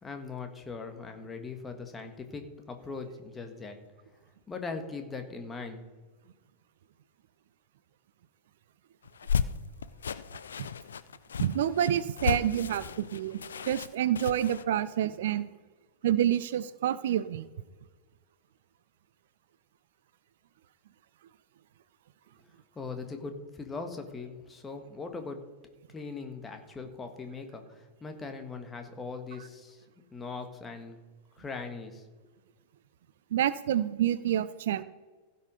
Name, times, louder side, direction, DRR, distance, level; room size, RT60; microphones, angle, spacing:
voice 1, 0.0-3.8 4.5-5.9 22.4-25.4 25.9-29.8 30.1-31.0 31.4-32.0, left 4 dB, 15° left, 5 dB, 1.5 m, -40 dB
sound 1, 9.1-14.6, left 7 dB, 70° left, 0.4 m, -34 dB
voice 2, 11.4-13.4 13.7-15.5 16.0-17.4 33.3-34.8, right 11 dB, 60° right, 16 dB, 0.4 m, -28 dB
16.0 x 5.7 x 5.1 m, 1.3 s
figure-of-eight pair, 90°, 0 cm